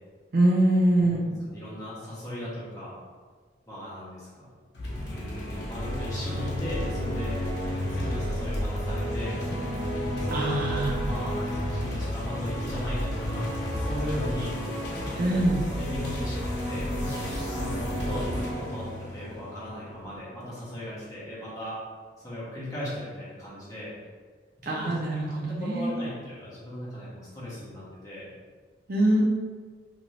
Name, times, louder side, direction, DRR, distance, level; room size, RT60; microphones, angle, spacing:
voice 1, 0.3-1.3 10.3-10.9 15.2-15.6 24.6-26.0 28.9-29.2, right 1 dB, 50° right, -2 dB, 0.5 m, -23 dB
voice 2, 1.0-2.9 3.7-4.5 5.1-7.4 7.9-9.4 10.2-14.5 15.2-15.3 15.7-16.9 17.5-21.8 22.2-23.9 24.6-28.3, left 1 dB, 20° left, -8 dB, 0.8 m, -37 dB
sound 1, 4.7-20.2, equal, 60° left, 0.7 m, -31 dB
2.6 x 2.5 x 3.1 m, 1.5 s
head